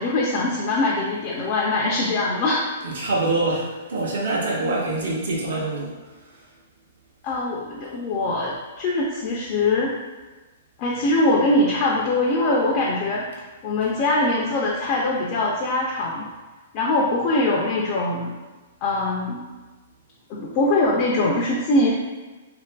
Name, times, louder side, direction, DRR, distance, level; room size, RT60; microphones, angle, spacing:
voice 1, 0.0-2.7 7.2-9.9 10.8-13.3 13.6-16.3 16.7-18.3 18.8-19.4 20.3-21.9, left 2 dB, 30° left, -4 dB, 0.3 m, -22 dB
voice 2, 2.8-5.9, right 2 dB, 70° right, -3 dB, 0.7 m, -25 dB
2.5 x 2.4 x 2.2 m, 1.2 s
hypercardioid pair, 170°, 0 cm